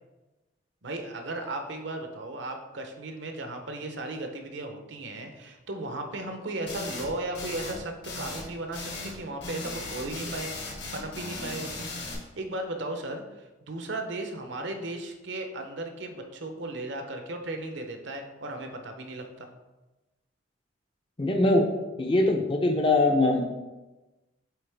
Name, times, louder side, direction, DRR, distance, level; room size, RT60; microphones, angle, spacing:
voice 1, 0.8-10.5 10.9-11.9 12.4-19.5, right 2 dB, 65° right, 5 dB, 0.7 m, -36 dB
sound 1, 6.7-7.1 7.3-7.8 8.0-9.2 9.4-12.1, left 3 dB, 60° left, 1.4 m, -37 dB
voice 2, 21.2-21.7 22.0-23.4, left 2 dB, 25° left, 3 dB, 0.5 m, -22 dB
7.9 x 3.5 x 3.4 m, 1.1 s
head